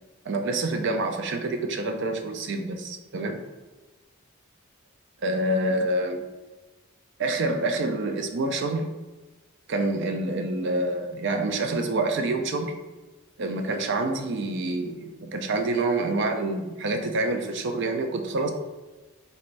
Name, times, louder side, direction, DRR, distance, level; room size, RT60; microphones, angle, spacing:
voice 1, 0.2-3.4 5.2-6.2 7.2-8.8 9.7-12.8 13.4-18.5, right 2 dB, 55° right, 5 dB, 0.4 m, -27 dB
4.0 x 3.3 x 2.5 m, 1.2 s
head